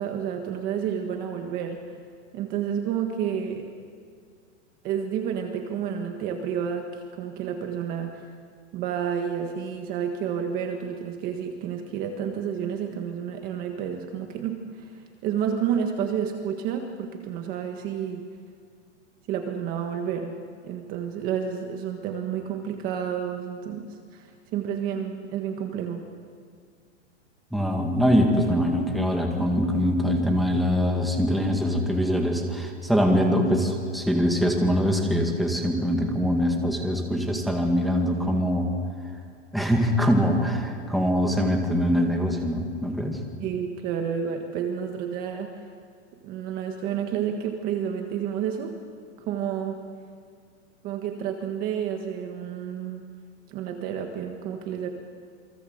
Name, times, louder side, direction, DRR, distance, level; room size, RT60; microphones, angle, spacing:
voice 1, 0.0-1.8 2.3-3.7 4.8-8.2 8.7-18.2 19.3-20.3 20.6-26.0 43.4-45.5 46.2-48.7 49.2-49.8 50.8-53.0 53.5-54.9, right 8 dB, 25° right, 4 dB, 1.5 m, -30 dB
voice 2, 27.5-38.7 39.5-43.2, equal, ahead, 1 dB, 2.1 m, -23 dB
28.5 x 23.0 x 8.0 m, 2.1 s
supercardioid pair, 165°, 36 cm